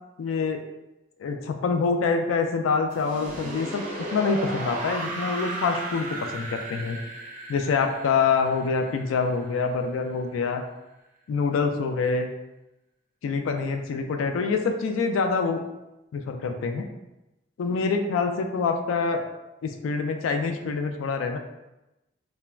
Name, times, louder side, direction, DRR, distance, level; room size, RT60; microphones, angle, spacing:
voice 1, 0.2-0.6 1.2-3.9 4.1-7.0 7.5-10.6 11.3-12.3 13.2-15.6 16.1-16.9 17.6-19.3 19.6-21.4, left 4 dB, 85° left, 6 dB, 0.3 m, -26 dB
sound 1, 2.9-9.8, right 1 dB, 40° right, 0.5 m, -35 dB
3.1 x 2.1 x 2.3 m, 0.97 s
head